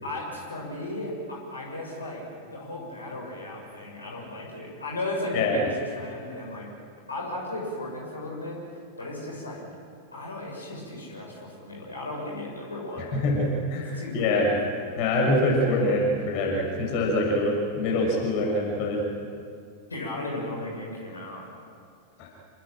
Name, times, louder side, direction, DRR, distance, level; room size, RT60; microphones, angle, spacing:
voice 1, 0.0-6.7 7.1-9.6 10.1-13.2 13.9-14.8 19.9-21.7, left 1 dB, 75° left, -2 dB, 7.0 m, -35 dB
voice 2, 13.0-14.5 15.0-19.0 22.2-22.3, left 1 dB, 45° left, 0 dB, 6.5 m, -25 dB
28.0 x 19.5 x 9.1 m, 2.3 s
figure-of-eight pair, 90°, 0 cm